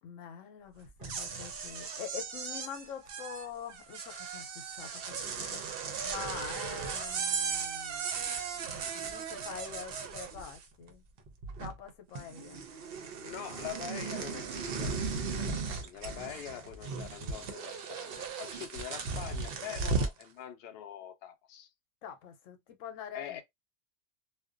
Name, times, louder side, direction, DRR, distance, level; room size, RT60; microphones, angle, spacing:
voice 1, 0.0-8.1 8.5-8.6 8.9-11.0 11.6-12.6 22.0-23.4, left 7 dB, 80° left, 1.0 m, -45 dB
sound 1, 0.9-10.9 11.2-11.9 12.1-20.2, right 5 dB, 60° right, 0.6 m, -37 dB
voice 2, 13.2-21.7 23.1-23.4, left 11 dB, 65° left, 0.7 m, -44 dB
2.4 x 2.1 x 2.4 m
omnidirectional pair, 1.3 m